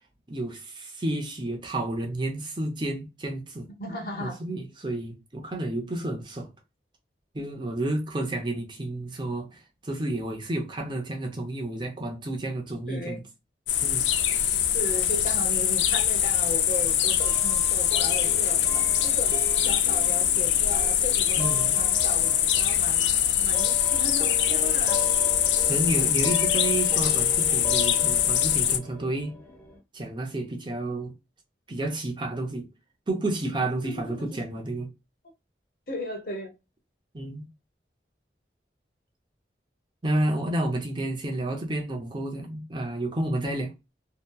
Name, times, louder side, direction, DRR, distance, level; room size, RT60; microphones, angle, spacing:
voice 1, 0.3-3.7 4.2-6.5 7.3-13.2 13.8-14.1 21.4-21.7 25.7-29.4 29.9-31.1 31.7-32.7 33.1-34.9 37.1-37.5 40.0-43.7, right 1 dB, 25° right, 0.5 m, -30 dB
voice 2, 3.8-4.4 12.9-13.2 14.7-19.3 19.7-25.0 33.8-34.4 35.9-36.5, left 1 dB, 55° left, 0.8 m, -36 dB
sound 1, 13.7-28.8, left 10 dB, 85° left, 0.4 m, -23 dB
sound 2, 17.2-29.8, left 3 dB, 10° left, 0.8 m, -39 dB
2.7 x 2.1 x 2.2 m
head